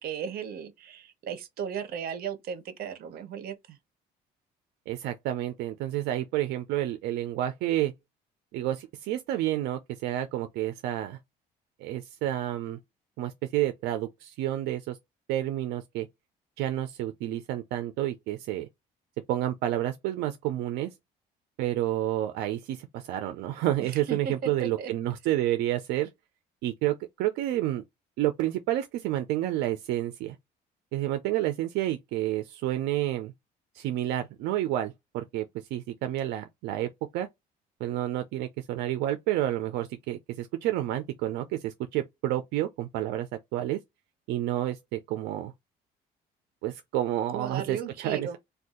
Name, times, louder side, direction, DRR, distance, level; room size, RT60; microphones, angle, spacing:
voice 1, 0.0-3.8 23.8-24.9 47.3-48.4, right 7 dB, 65° right, 0.8 m, -36 dB
voice 2, 4.9-7.9 8.5-11.2 11.8-12.8 13.2-15.0 15.3-16.1 16.6-18.7 19.3-20.9 21.6-26.1 26.6-27.8 28.2-30.4 30.9-33.3 33.7-37.3 37.8-43.8 44.3-45.5 46.6-48.4, right 13 dB, 85° right, 0.5 m, -30 dB
2.6 x 2.3 x 3.6 m
cardioid pair, 110°, 17 cm